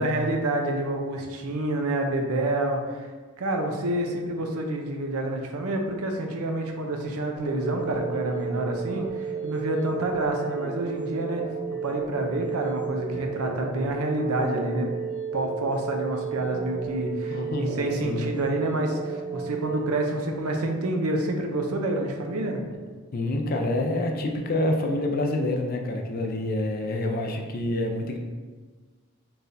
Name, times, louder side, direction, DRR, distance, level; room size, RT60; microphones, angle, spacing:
voice 1, 0.0-3.1 3.4-11.4 11.8-14.9 15.3-22.6, right 1 dB, 85° right, 3 dB, 0.6 m, -28 dB
sound 1, 7.4-19.8, right 6 dB, 40° right, 0.8 m, -33 dB
voice 2, 17.3-18.3 23.1-28.2, left 1 dB, 40° left, 3 dB, 0.4 m, -27 dB
4.5 x 3.3 x 2.6 m, 1.4 s
head